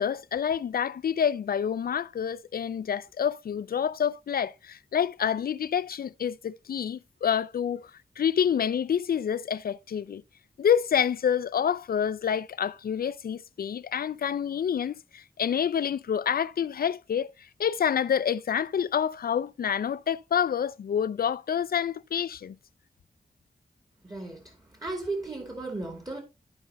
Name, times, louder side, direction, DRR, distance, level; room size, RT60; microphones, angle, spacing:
voice 1, 0.0-7.9 8.2-10.2 10.6-17.3 17.6-22.6, left 8 dB, 90° left, 0.4 m, -28 dB
voice 2, 24.0-26.2, right 2 dB, 25° right, 2.4 m, -35 dB
13.5 x 5.3 x 3.0 m
wide cardioid pair, 105°, 15 cm